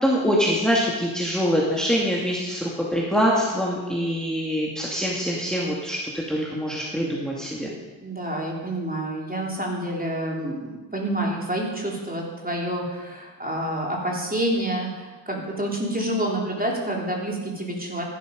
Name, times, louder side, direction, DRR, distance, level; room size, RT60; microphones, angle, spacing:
voice 1, 0.0-7.7, equal, ahead, -4 dB, 2.3 m, -24 dB
voice 2, 8.0-18.0, right 1 dB, 20° right, -2 dB, 3.4 m, -28 dB
16.0 x 11.5 x 5.3 m, 1.2 s
wide cardioid pair, 80°, 47 cm